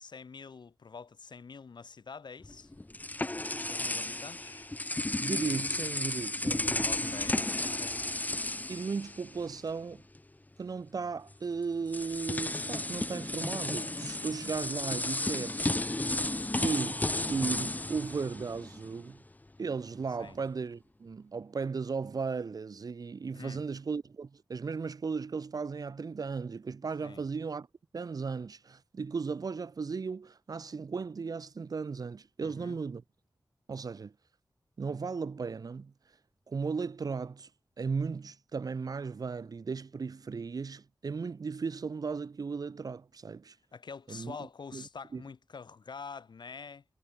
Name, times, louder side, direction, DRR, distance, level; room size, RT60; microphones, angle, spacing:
voice 1, 0.0-2.7 3.6-4.7 6.8-8.0 20.2-20.4 23.3-23.6 27.0-27.2 32.4-32.8 43.7-46.8, left 5 dB, 80° left, 1.9 m, -46 dB
sound 1, 2.4-9.7 10.0-10.2 11.3-11.4 11.9-19.0, left 2 dB, 20° left, 0.9 m, -33 dB
voice 2, 5.2-7.1 8.7-10.0 10.6-15.7 16.6-19.2 19.6-27.7 27.9-33.0 33.7-34.1 34.8-35.9 36.5-37.5 37.8-43.6 44.1-44.4 44.7-44.8 45.1-45.2, right 5 dB, 55° right, 0.5 m, -36 dB
wide cardioid pair, 65°, 8 cm